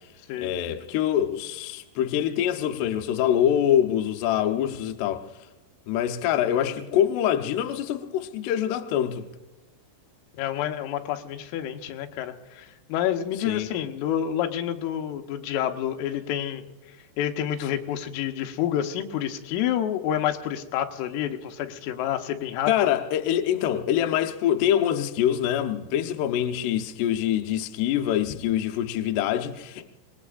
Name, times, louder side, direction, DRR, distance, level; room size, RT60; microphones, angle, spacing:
voice 1, 0.4-5.3 5.9-9.3 13.5-13.7 22.7-29.9, left 10 dB, 75° left, 2.7 m, -25 dB
voice 2, 10.3-16.6 17.2-22.7, left 10 dB, 90° left, 3.6 m, -28 dB
26.0 x 20.5 x 2.5 m
omnidirectional pair, 5.6 m